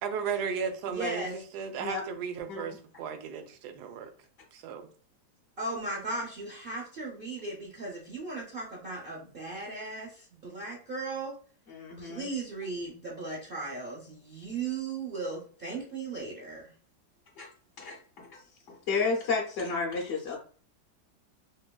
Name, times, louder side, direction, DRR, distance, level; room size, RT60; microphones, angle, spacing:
voice 1, 0.0-1.2 1.5-4.1 4.5-4.9, right 6 dB, 80° right, 1.1 m, -35 dB
voice 2, 0.9-1.4 5.6-11.3 12.0-16.7, right 3 dB, 45° right, 0.7 m, -37 dB
voice 3, 11.7-12.3 17.4-17.5 17.8-18.4 18.7-20.4, left 4 dB, 60° left, 0.8 m, -32 dB
3.3 x 2.9 x 2.2 m
omnidirectional pair, 1.8 m